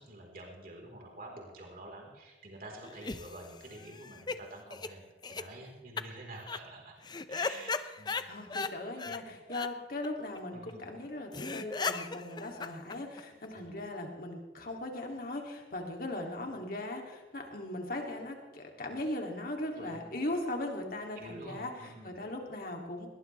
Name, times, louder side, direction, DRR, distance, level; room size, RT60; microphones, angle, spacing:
voice 1, 0.0-6.9 7.3-8.2 8.9-9.1 10.5-10.9 13.5-13.7 19.8-20.1 21.2-22.2, right 1 dB, 55° right, -1 dB, 4.2 m, -48 dB
sound 1, 2.8-4.4 4.7-4.9 5.2-5.4 6.0-6.1 6.4-6.6 7.0-8.7 9.0-9.2 9.5-9.7 10.0-10.1 10.4-10.5 10.7-10.8 11.0-11.1 11.3-13.5, left 4 dB, 25° left, 0.6 m, -37 dB
voice 2, 8.1-23.1, left 1 dB, 55° left, 1 dB, 2.9 m, -39 dB
21.0 x 19.0 x 3.4 m, 1.2 s
head